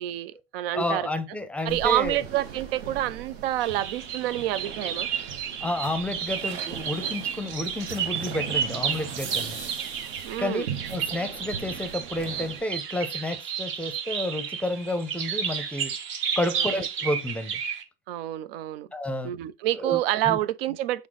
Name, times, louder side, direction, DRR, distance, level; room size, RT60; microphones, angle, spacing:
voice 1, 0.0-1.1 1.6-5.1 10.2-10.7 16.5-16.8 18.1-18.9 19.2-21.1, right 14 dB, 65° right, 0.5 m, -28 dB
voice 2, 0.7-2.2 5.6-9.6 10.4-10.6 10.9-15.9 16.4-17.6 18.9-19.3 19.8-20.0 20.3-20.4, left 1 dB, 5° left, 0.6 m, -30 dB
sound 1, 1.7-12.6, right 7 dB, 85° right, 0.9 m, -39 dB
sound 2, 3.6-17.8, right 7 dB, 40° right, 0.8 m, -32 dB
5.9 x 2.1 x 3.8 m
hypercardioid pair, 95°, 31 cm